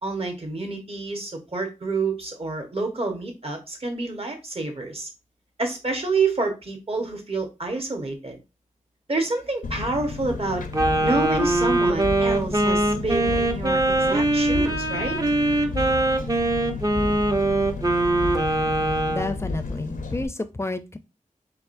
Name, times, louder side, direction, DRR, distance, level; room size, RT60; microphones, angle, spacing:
voice 1, 0.0-5.1 5.6-8.4 9.1-10.6 11.0-15.2, right 3 dB, 45° right, 4 dB, 1.2 m, -28 dB
Engine, 9.6-20.2, left 3 dB, 80° left, 0.6 m, -32 dB
Wind instrument woodwind instrument, 10.7-19.3, right 2 dB, 25° right, 0.6 m, -22 dB
voice 2, 19.1-21.0, left 2 dB, 20° left, 11 dB, 0.5 m, -30 dB
4.7 x 3.4 x 2.5 m, 0.27 s
wide cardioid pair, 90°, 14 cm